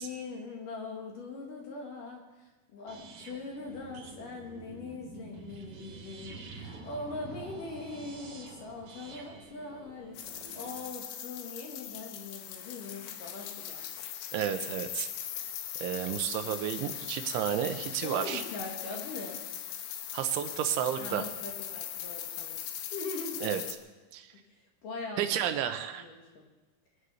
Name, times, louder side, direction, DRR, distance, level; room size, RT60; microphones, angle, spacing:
voice 1, 0.0-3.0 3.3-13.8 16.4-16.6 18.0-19.4 21.0-23.4 24.4-25.6 25.9-26.4, left 3 dB, 55° left, 0 dB, 2.9 m, -41 dB
sound 1, 2.9-10.7, right 4 dB, 55° right, 3.4 m, -48 dB
sound 2, 10.2-23.8, left 10 dB, 75° left, 2.9 m, -40 dB
voice 2, 14.3-15.1 15.8-18.4 20.1-21.3 23.4-23.6 24.1-24.3 25.2-26.0, right 10 dB, 80° right, 8 dB, 3.3 m, -31 dB
23.5 x 9.8 x 5.6 m, 1.2 s
omnidirectional pair, 5.5 m